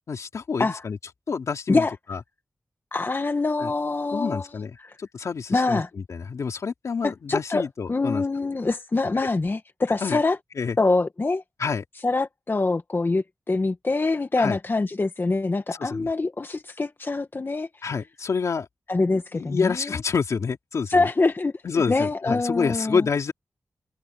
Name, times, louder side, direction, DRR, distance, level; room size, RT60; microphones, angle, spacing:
voice 1, 0.1-1.0 1.3-2.2 3.6-3.7 4.1-8.2 10.0-10.2 10.6-10.8 11.6-11.8 14.4-14.6 15.8-16.1 17.8-18.7 19.1-21.1 21.6-23.3, left 5 dB, 75° left, 3.1 m, -28 dB
voice 2, 2.9-4.4 4.8-4.9 5.5-5.9 7.0-10.4 10.8-11.4 12.0-17.7 18.9-19.9 20.9-21.5 21.9-23.0, left 3 dB, 40° left, 1.5 m, -24 dB
open air
cardioid pair, 50°, 5 cm